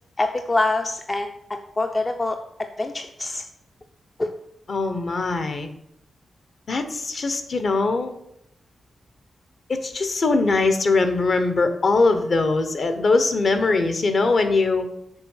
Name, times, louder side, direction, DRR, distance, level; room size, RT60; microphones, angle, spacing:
voice 1, 0.2-2.4 2.8-3.4 4.2-4.3, left 2 dB, 25° left, 5 dB, 0.5 m, -25 dB
voice 2, 4.7-5.7 6.7-8.1 9.7-14.9, left 3 dB, 50° left, 8 dB, 1.0 m, -21 dB
6.6 x 4.6 x 6.5 m, 0.77 s
wide cardioid pair, 130°, 0 cm